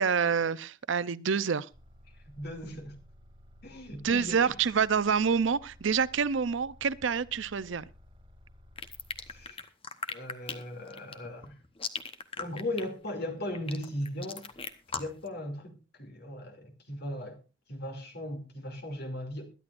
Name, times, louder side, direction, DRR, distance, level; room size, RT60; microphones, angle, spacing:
voice 1, 0.0-1.7 4.0-7.8, right 6 dB, 70° right, 0.5 m, -27 dB
sound 1, 1.7-9.5, left 1 dB, 25° right, 2.5 m, -55 dB
voice 2, 2.1-3.0 3.6-4.5 9.3-9.7 10.1-11.6 12.4-14.5 14.9-17.4 17.7-19.5, left 1 dB, 55° left, 2.8 m, -38 dB
sound 2, 8.8-15.3, left 5 dB, 30° left, 1.0 m, -38 dB
21.5 x 11.5 x 2.5 m
head